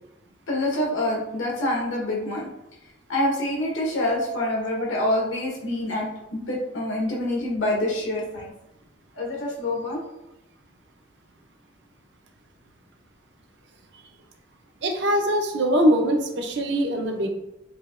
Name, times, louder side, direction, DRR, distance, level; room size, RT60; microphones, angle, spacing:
voice 1, 0.5-2.4 3.1-8.5 9.2-10.0, left 1 dB, 75° left, -3 dB, 1.2 m, -26 dB
voice 2, 14.8-17.3, equal, 60° right, 4 dB, 0.5 m, -22 dB
4.8 x 2.8 x 2.4 m, 0.87 s
head